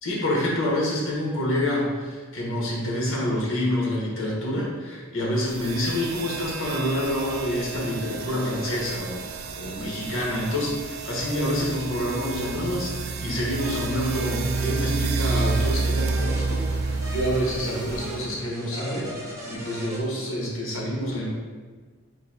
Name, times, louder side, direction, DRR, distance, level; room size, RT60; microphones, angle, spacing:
voice 1, 0.0-21.3, left 1 dB, 70° left, -3 dB, 1.0 m, -27 dB
sound 1, 5.4-18.3, right 4 dB, 70° right, 0.3 m, -30 dB
sound 2, 13.2-20.0, right 1 dB, 15° right, 0.6 m, -37 dB
3.8 x 2.7 x 4.2 m, 1.5 s
head